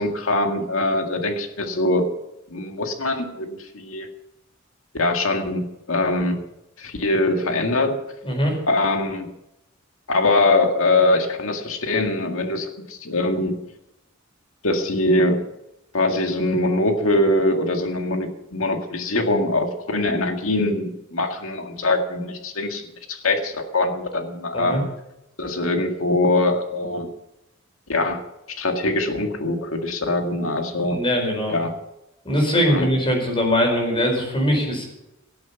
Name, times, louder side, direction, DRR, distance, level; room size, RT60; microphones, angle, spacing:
voice 1, 0.0-2.1 2.5-4.1 4.9-6.4 6.8-8.0 8.7-9.3 10.1-13.5 14.6-15.4 15.9-24.9 25.4-27.1 27.9-28.2 28.5-31.0 31.5-31.7 32.7-32.9, left 2 dB, 80° left, 4 dB, 1.9 m, -22 dB
voice 2, 8.2-8.6 24.5-24.8 30.8-31.5 32.2-34.9, equal, 25° left, 1 dB, 4.8 m, -21 dB
17.5 x 7.8 x 7.0 m, 0.89 s
head